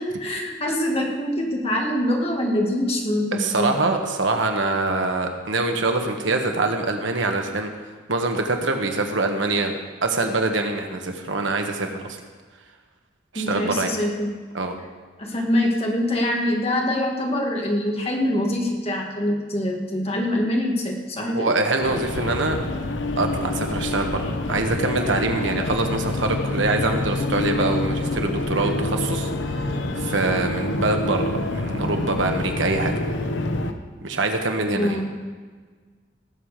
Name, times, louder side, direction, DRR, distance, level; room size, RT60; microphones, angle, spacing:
voice 1, 0.0-3.7 13.3-14.4 15.2-21.6 34.8-35.1, left 1 dB, 30° left, 0 dB, 2.0 m, -24 dB
voice 2, 3.3-7.7 8.1-9.7 10.0-12.2 13.3-13.9 14.5-14.7 21.3-22.6 23.2-32.9 34.0-35.0, right 2 dB, 85° right, 4 dB, 1.5 m, -24 dB
sound 1, 21.8-33.7, left 2 dB, 75° left, 1.0 m, -27 dB
18.5 x 7.5 x 5.0 m, 1.5 s
head